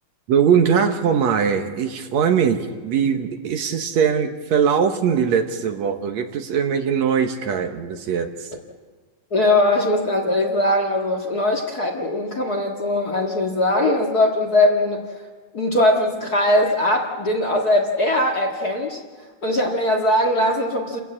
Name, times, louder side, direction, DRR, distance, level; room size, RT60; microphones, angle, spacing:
voice 1, 0.3-8.5, right 7 dB, 65° right, 6 dB, 2.4 m, -21 dB
voice 2, 9.3-15.1 15.5-19.0 19.4-21.0, left 1 dB, 35° left, 2 dB, 1.9 m, -20 dB
29.5 x 14.5 x 8.7 m, 1.5 s
omnidirectional pair, 3.5 m